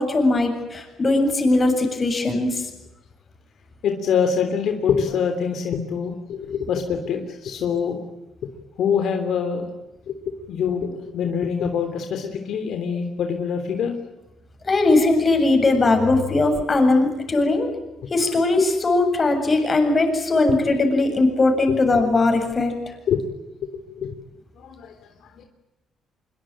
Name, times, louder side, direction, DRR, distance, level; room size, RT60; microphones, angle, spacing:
voice 1, 0.0-2.7 14.6-17.7 18.1-22.7, left 2 dB, 30° left, 5 dB, 7.6 m, -19 dB
voice 2, 3.8-8.0 8.4-8.5 8.8-9.7 10.1-13.9 23.1-23.2 23.6-23.7 24.0-24.1 24.6-24.9 25.4-25.5, left 7 dB, 75° left, 5 dB, 3.3 m, -25 dB
25.5 x 23.0 x 9.0 m, 0.96 s
cardioid pair, 90°, 0 cm